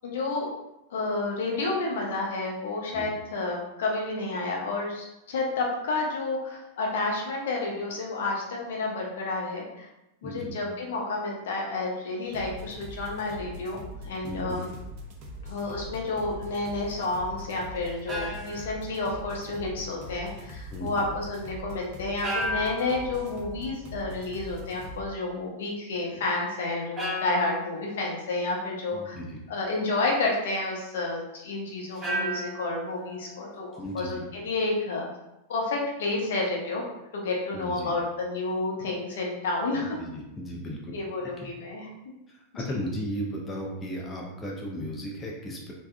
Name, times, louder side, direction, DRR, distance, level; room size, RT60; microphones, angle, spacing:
voice 1, 0.0-0.5 0.9-9.9 10.2-14.7 15.4-29.2 29.5-35.1 35.5-36.9 37.1-40.0 40.9-41.9 42.5-42.9, left 3 dB, 60° left, -2 dB, 0.6 m, -30 dB
voice 2, 10.2-10.6 14.2-14.6 20.7-21.1 28.9-29.4 33.8-34.3 37.5-37.9 39.8-40.9 41.2-41.5 42.3-45.7, equal, 15° left, -2 dB, 0.5 m, -35 dB
sound 1, 12.3-25.0, equal, 40° right, 0.5 m, -42 dB
sound 2, 17.8-19.7 22.2-23.6 26.1-26.2 27.0-28.6 31.9-33.9, equal, 15° right, 0.9 m, -35 dB
3.4 x 2.1 x 2.3 m, 0.91 s
figure-of-eight pair, 90°, 0 cm